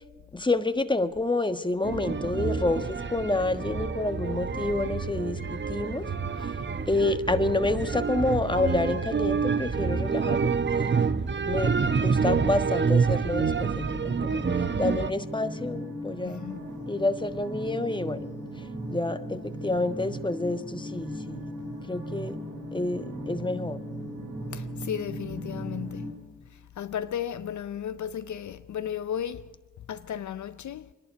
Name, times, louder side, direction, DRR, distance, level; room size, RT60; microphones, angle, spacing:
voice 1, 0.3-6.1 6.4-6.5 6.9-10.9 11.5-11.7 12.0-14.4 14.8-16.4 16.9-18.2 18.9-21.5 21.9-22.4 22.7-23.9, left 2 dB, 15° left, 1.4 m, -28 dB
sound 1, 1.8-15.1, right 5 dB, 35° right, 0.9 m, -27 dB
sound 2, 13.5-26.1, right 1 dB, 70° right, 5.9 m, -37 dB
voice 2, 16.2-16.7 24.5-29.4 29.9-30.9, left 9 dB, 60° left, 0.6 m, -35 dB
25.0 x 11.0 x 9.3 m
supercardioid pair, 45°, 33 cm